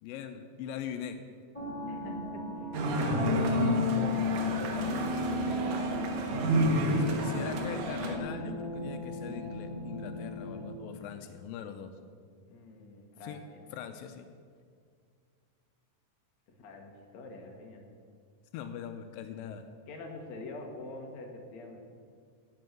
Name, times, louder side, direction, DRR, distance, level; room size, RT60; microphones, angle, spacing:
voice 1, 0.0-1.2 7.0-11.9 13.2-13.4 13.7-14.3 18.5-19.6, left 8 dB, 85° left, 7 dB, 2.4 m, -41 dB
sound 1, 1.5-10.6, left 3 dB, 10° left, 2.4 m, -34 dB
voice 2, 2.6-6.1 6.9-7.6 12.5-13.6 16.6-17.8 19.9-21.8, left 2 dB, 60° left, 1 dB, 2.7 m, -46 dB
sound 2, 2.7-8.2, right 1 dB, 75° right, 3.0 m, -31 dB
15.5 x 5.6 x 9.2 m, 2.1 s
omnidirectional pair, 3.9 m